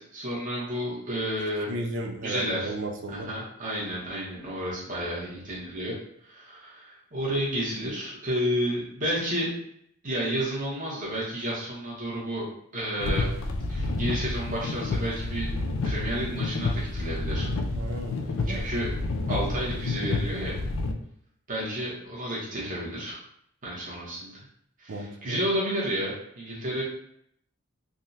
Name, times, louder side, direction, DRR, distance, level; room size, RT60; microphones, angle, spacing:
voice 1, 0.0-1.9 2.2-2.7 3.1-5.9 6.2-9.5 10.0-12.5 12.7-13.3 13.7-15.5 15.8-17.5 18.5-18.9 19.3-20.6 21.5-23.2 23.6-24.4 24.8-26.8, equal, 35° right, -6 dB, 1.0 m, -31 dB
voice 2, 1.7-3.3 17.7-18.7 19.2-19.5 24.9-25.4, right 1 dB, 55° right, 2 dB, 0.4 m, -35 dB
sound 1, 13.0-20.9, left 2 dB, 65° left, 0.3 m, -29 dB
3.4 x 2.2 x 2.7 m, 0.71 s
head